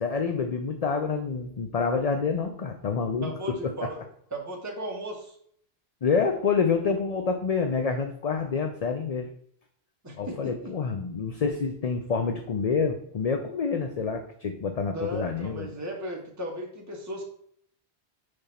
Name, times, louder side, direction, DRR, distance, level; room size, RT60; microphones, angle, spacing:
voice 1, 0.0-3.6 6.0-9.3 10.2-15.7, left 5 dB, 45° left, 5 dB, 0.6 m, -27 dB
voice 2, 3.2-4.0 4.3-5.3 10.0-10.7 14.9-17.2, right 1 dB, 15° right, -1 dB, 1.2 m, -36 dB
6.9 x 3.5 x 5.7 m, 0.64 s
omnidirectional pair, 1.1 m